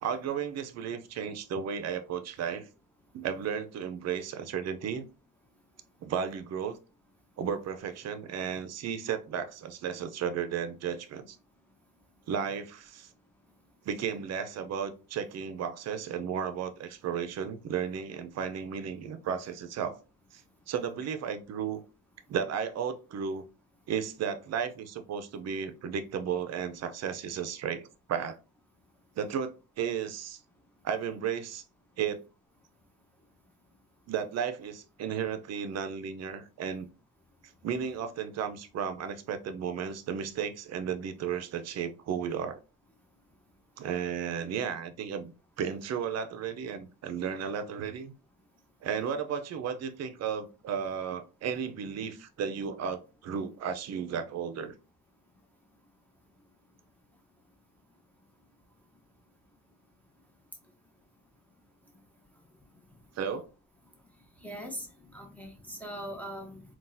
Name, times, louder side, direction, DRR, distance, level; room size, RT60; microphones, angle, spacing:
voice 1, 0.0-2.7 3.1-5.1 6.0-6.8 7.4-11.4 12.3-13.1 13.9-20.0 20.3-20.4 20.7-21.8 22.3-23.4 23.9-28.4 29.2-30.4 30.8-31.6 32.0-32.2 34.1-36.9 37.6-42.6 43.8-48.1 48.8-54.7 63.2-63.5, right 7 dB, 60° right, 0.6 m, -34 dB
voice 2, 64.4-66.6, equal, 5° left, 1.0 m, -41 dB
3.8 x 2.4 x 2.6 m
cardioid pair, 90°, 30 cm